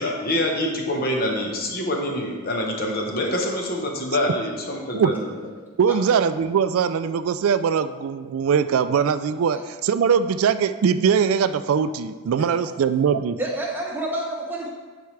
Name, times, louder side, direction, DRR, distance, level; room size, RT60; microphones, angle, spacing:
voice 1, 0.0-5.4, left 1 dB, 45° left, 0 dB, 1.1 m, -26 dB
voice 2, 5.8-13.4, right 7 dB, 75° right, 11 dB, 0.3 m, -21 dB
voice 3, 13.4-14.7, right 1 dB, 10° right, -3 dB, 1.1 m, -28 dB
10.5 x 4.5 x 3.3 m, 1.4 s
head